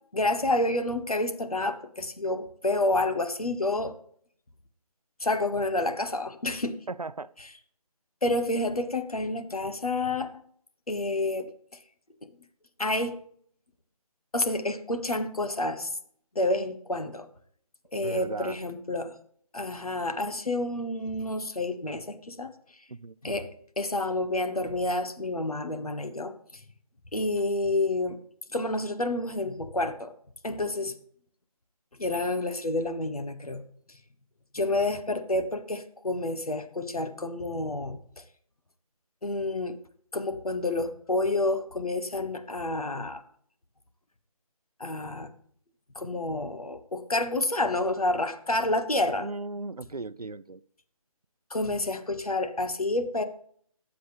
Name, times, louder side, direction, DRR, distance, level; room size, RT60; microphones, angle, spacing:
voice 1, 0.1-4.0 5.2-6.8 8.2-10.3 10.9-11.5 12.2-12.3 12.8-13.2 14.3-16.0 16.3-17.3 17.9-19.2 19.5-22.5 23.2-23.5 23.8-26.6 27.1-28.2 28.5-30.1 30.4-30.9 32.0-33.6 34.5-38.0 39.2-39.8 40.1-43.2 44.8-45.3 45.9-49.3 51.5-53.2, left 2 dB, 75° left, 1.3 m, -29 dB
voice 2, 6.9-7.3 18.0-18.6 22.9-23.1 49.2-50.6, right 3 dB, 90° right, 0.5 m, -37 dB
19.5 x 7.7 x 3.5 m
figure-of-eight pair, 155°, 19 cm